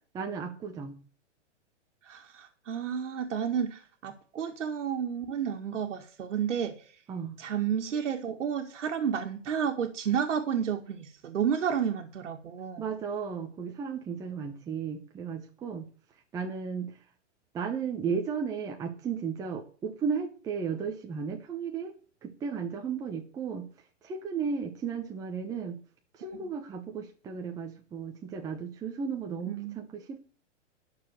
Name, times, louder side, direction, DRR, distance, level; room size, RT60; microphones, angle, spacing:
voice 1, 0.1-1.0 7.1-7.3 12.8-15.9 16.3-17.0 17.5-21.9 22.2-23.7 24.0-25.8 26.1-30.2, right 6 dB, 10° right, 3 dB, 0.8 m, -34 dB
voice 2, 2.1-6.7 7.4-12.8 29.5-29.8, right 8 dB, 75° right, 3 dB, 2.0 m, -31 dB
11.0 x 6.8 x 7.9 m, 0.41 s
hypercardioid pair, 155°, 37 cm